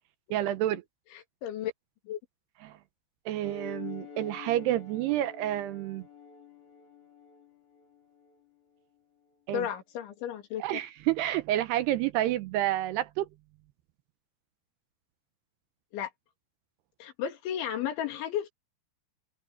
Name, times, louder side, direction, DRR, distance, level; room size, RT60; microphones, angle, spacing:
voice 1, 0.3-0.8 2.6-2.8 3.3-6.0 9.5-9.7 10.6-13.3, right 14 dB, 75° right, 2.6 m, -29 dB
voice 2, 1.4-1.7 2.1-2.2 9.5-10.6 15.9-16.1 17.0-18.5, left 10 dB, 85° left, 5.0 m, -33 dB
sound 1, 3.4-8.4, left 6 dB, 45° left, 3.5 m, -47 dB
omnidirectional pair, 5.2 m